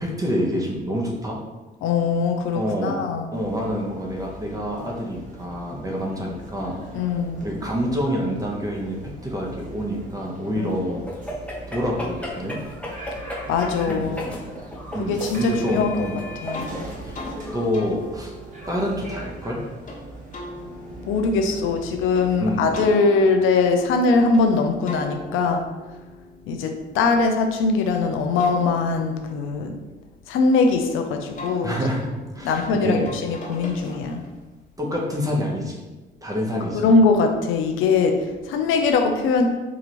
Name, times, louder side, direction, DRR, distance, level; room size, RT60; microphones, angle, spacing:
voice 1, 0.0-1.4 2.5-3.0 3.3-7.1 7.4-11.0 11.7-12.6 13.9-14.1 14.9-16.2 17.0-17.2 17.5-18.3 18.7-19.6 22.4-22.6 31.6-33.1 34.8-35.7 36.2-36.8, equal, 15° right, -2 dB, 1.0 m, -27 dB
voice 2, 1.8-3.3 6.9-7.5 10.6-10.8 13.5-14.3 15.0-16.1 16.4-16.7 21.1-25.7 26.5-29.8 30.3-31.7 32.4-34.2 36.7-39.5, left 4 dB, 90° left, 4 dB, 0.5 m, -21 dB
sound 1, 3.3-22.8, right 1 dB, 40° right, 1.2 m, -40 dB
sound 2, 11.1-17.7, left 1 dB, 5° left, 0.9 m, -35 dB
sound 3, 16.5-16.7 17.1-17.4 17.7-20.0 20.3-22.3 22.7-24.5 24.9-27.7 28.2-30.8 31.4-34.4, left 2 dB, 40° left, 1.2 m, -40 dB
4.8 x 2.5 x 3.0 m, 1.2 s
cardioid pair, 90°, 20 cm